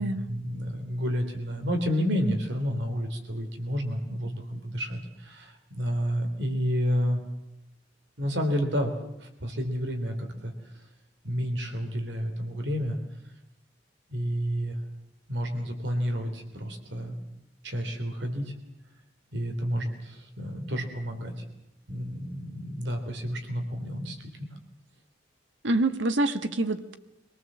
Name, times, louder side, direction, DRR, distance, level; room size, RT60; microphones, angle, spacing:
voice 1, 0.0-7.2 8.2-8.9 9.2-10.5 11.2-13.0 14.1-14.8 15.3-17.2 17.6-18.6 19.3-21.4 21.9-24.5, equal, 65° right, 5 dB, 3.5 m, -30 dB
voice 2, 25.6-26.9, right 2 dB, 85° right, 9 dB, 1.5 m, -26 dB
25.0 x 18.5 x 7.6 m, 0.90 s
head